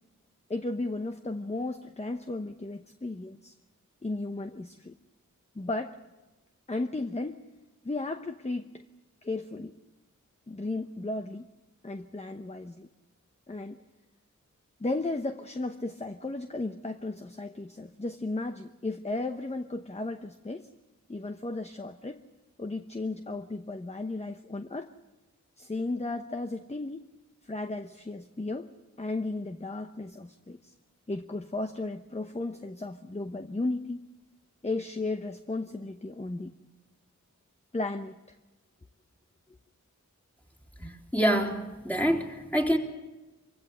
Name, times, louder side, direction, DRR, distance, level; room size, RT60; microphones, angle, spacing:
voice 1, 0.5-3.5 4.0-5.0 5.5-6.0 6.7-7.4 7.8-8.8 9.2-9.8 10.5-11.5 11.8-12.9 13.5-13.8 14.8-20.7 21.1-22.2 22.6-24.9 25.6-27.1 27.4-28.7 29.0-30.7 31.1-34.0 34.6-36.5 37.7-38.2, left 2 dB, 20° left, 7 dB, 0.9 m, -34 dB
voice 2, 40.8-42.8, equal, 5° left, 0 dB, 3.4 m, -27 dB
24.5 x 16.0 x 7.9 m, 1.1 s
wide cardioid pair, 55°, 31 cm